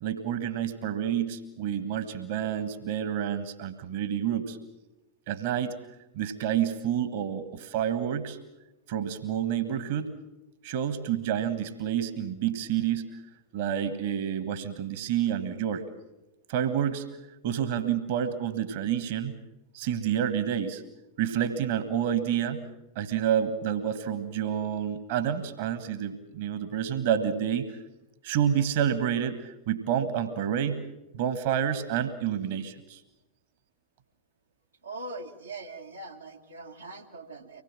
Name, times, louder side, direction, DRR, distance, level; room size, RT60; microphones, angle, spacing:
voice 1, 0.0-4.6 5.3-5.8 6.1-8.4 8.9-10.1 10.6-13.1 13.5-15.8 16.5-17.1 17.4-19.3 19.7-20.8 21.2-22.7 22.9-27.7 28.2-30.8 31.1-33.0, right 9 dB, 50° right, 12 dB, 1.6 m, -29 dB
voice 2, 34.8-37.6, right 2 dB, 80° right, 0 dB, 1.9 m, -41 dB
25.0 x 20.0 x 7.4 m, 0.98 s
figure-of-eight pair, 90°, 0 cm